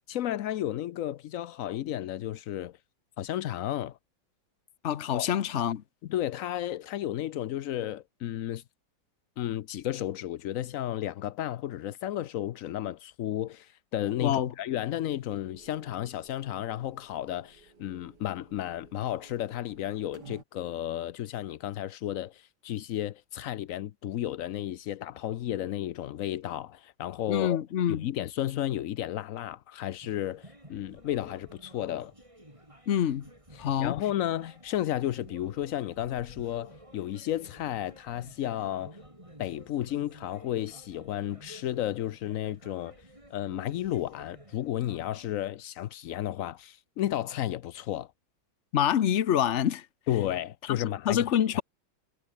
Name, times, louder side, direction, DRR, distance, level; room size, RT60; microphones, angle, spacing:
voice 1, 0.1-2.8 3.2-4.0 5.1-5.3 6.0-8.6 9.4-32.1 33.5-39.0 39.4-43.0 43.3-48.1 50.1-51.3 51.5-51.6, left 12 dB, 80° left, 0.7 m, -33 dB
voice 2, 4.8-5.8 14.2-14.5 27.3-28.0 32.9-33.2 33.6-34.0 48.7-49.8 50.7-50.8 51.1-51.6, left 10 dB, 55° left, 0.8 m, -26 dB
sound 1, 15.0-20.4, right 5 dB, 55° right, 3.1 m, -55 dB
sound 2, 30.0-45.3, right 1 dB, 15° right, 7.2 m, -52 dB
omnidirectional pair, 2.2 m